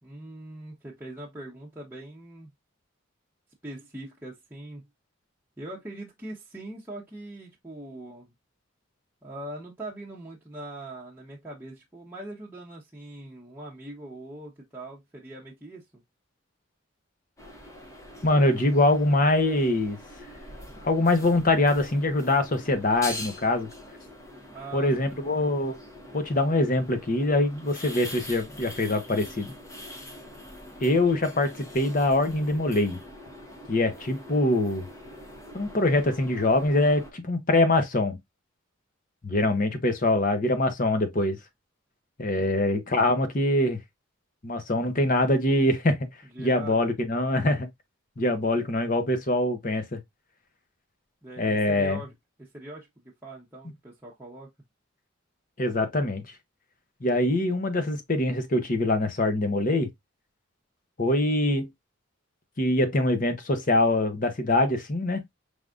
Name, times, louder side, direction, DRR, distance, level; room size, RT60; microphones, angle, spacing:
voice 1, 0.0-2.5 3.6-4.8 5.6-8.3 9.2-15.8 24.5-25.2 42.4-42.8 46.3-46.8 51.2-52.1 52.4-52.9 53.2-54.5, right 1 dB, 10° right, 1.0 m, -42 dB
sound 1, 17.4-37.1, left 1 dB, 15° left, 0.9 m, -44 dB
voice 2, 18.2-20.0 20.8-23.7 24.7-25.8 26.1-29.5 30.8-33.0 33.7-34.9 35.5-38.2 39.2-41.4 42.2-43.8 44.4-46.0 46.4-47.7 48.2-50.0 51.4-52.0 55.6-56.2 57.0-59.9 61.0-61.7 62.6-65.2, left 2 dB, 40° left, 0.9 m, -24 dB
4.9 x 3.5 x 2.4 m
head